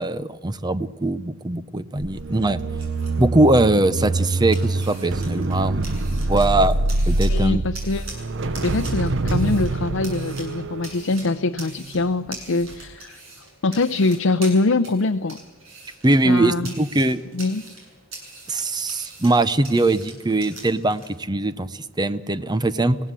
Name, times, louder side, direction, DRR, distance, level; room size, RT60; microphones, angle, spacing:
voice 1, 0.0-2.6 3.2-5.8 6.1-6.7 7.1-7.6 16.0-17.2 18.5-23.0, right 2 dB, 20° right, 14 dB, 0.7 m, -21 dB
sound 1, 2.0-12.3 12.6-12.9, right 2 dB, 60° right, 0.8 m, -25 dB
sound 2, 2.5-21.1, right 2 dB, 75° right, 7.9 m, -43 dB
voice 2, 7.3-8.1 8.6-13.2 13.6-15.4 16.2-16.7 17.3-17.6, left 3 dB, 70° left, 8 dB, 0.6 m, -23 dB
26.0 x 17.0 x 7.5 m, 1.3 s
head